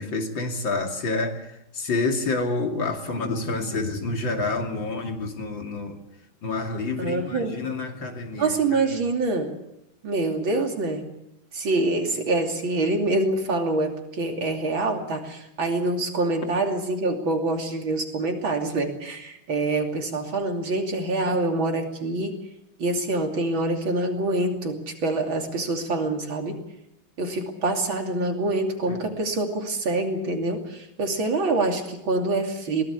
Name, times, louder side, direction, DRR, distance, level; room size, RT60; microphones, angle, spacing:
voice 1, 0.0-1.5 1.7-6.0 6.4-8.8 28.9-29.0, left 3 dB, 60° left, 4 dB, 3.4 m, -28 dB
voice 2, 7.0-7.6 8.4-9.5 10.0-11.0 11.5-22.3 22.8-26.6 27.2-32.8, right 2 dB, 65° right, 3 dB, 3.6 m, -25 dB
22.5 x 18.5 x 8.4 m, 0.81 s
omnidirectional pair, 2.3 m